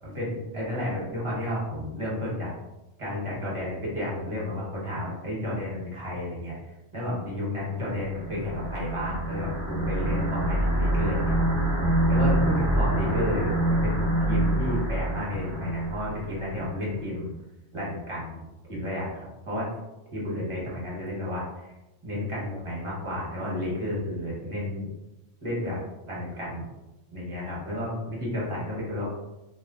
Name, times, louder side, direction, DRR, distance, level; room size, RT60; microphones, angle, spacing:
voice 1, 0.0-2.5 3.0-6.5 6.9-11.4 12.1-17.3 17.7-19.7 20.1-21.7 22.0-24.9 25.4-25.8 26.1-26.6 27.1-29.1, left 1 dB, 30° right, -6 dB, 0.9 m, -32 dB
sound 1, 8.0-16.6, right 1 dB, 50° right, 0.4 m, -26 dB
2.4 x 2.0 x 3.7 m, 0.97 s
omnidirectional pair, 1.3 m